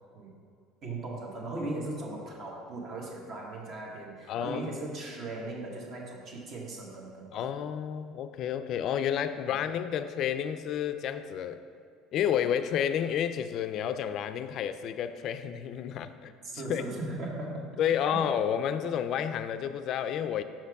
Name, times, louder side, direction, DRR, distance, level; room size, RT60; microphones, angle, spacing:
voice 1, 0.8-7.4 16.4-17.7 18.1-18.3, right 2 dB, 45° right, -1 dB, 1.2 m, -38 dB
voice 2, 4.3-4.6 7.3-11.6 12.1-16.3 16.7-16.8 17.8-20.4, left 9 dB, 55° left, 10 dB, 0.3 m, -30 dB
5.8 x 4.4 x 4.7 m, 2.2 s
cardioid pair, 125°, 0 cm